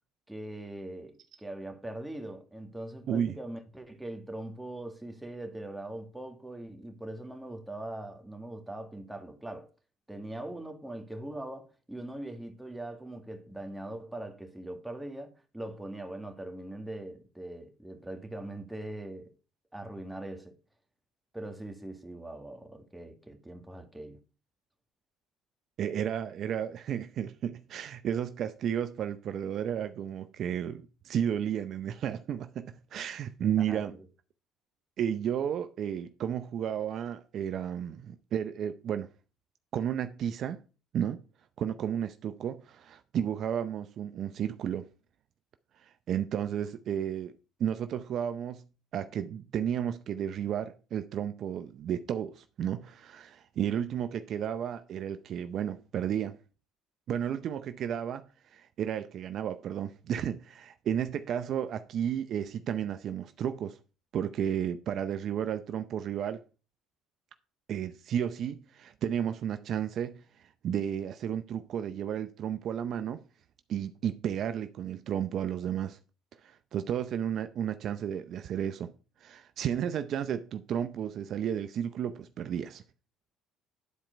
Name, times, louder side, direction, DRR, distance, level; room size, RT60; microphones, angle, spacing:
voice 1, 0.3-9.7 10.1-19.3 19.7-20.5 21.3-24.2 33.4-34.1, right 1 dB, 5° right, 1.9 m, -41 dB
voice 2, 25.8-33.9 35.0-39.1 39.7-40.6 40.9-41.2 41.6-44.9 45.8-48.6 48.9-56.4 57.1-58.2 58.5-63.8 64.1-66.4 67.7-70.2 70.6-73.2 73.7-76.0 76.4-78.9 79.2-82.8, right 9 dB, 55° right, 0.5 m, -33 dB
10.0 x 4.4 x 5.1 m
supercardioid pair, 75°, 0 cm